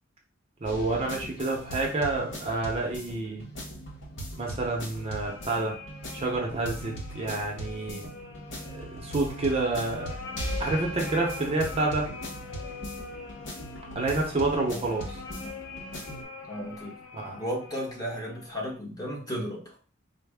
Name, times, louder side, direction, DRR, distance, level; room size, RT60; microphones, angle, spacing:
voice 1, 0.6-3.4 4.4-5.8 6.1-8.1 8.6-10.1 10.6-12.1 13.9-15.2 17.1-17.4, right 2 dB, 30° right, 0 dB, 0.7 m, -29 dB
sound 1, 0.7-16.2, right 1 dB, 65° left, 0.9 m, -39 dB
sound 2, 4.4-18.8, left 4 dB, 90° left, 0.7 m, -43 dB
voice 2, 16.4-17.0 17.3-19.8, equal, 20° left, -3 dB, 1.0 m, -34 dB
4.0 x 2.1 x 3.5 m, 0.38 s
head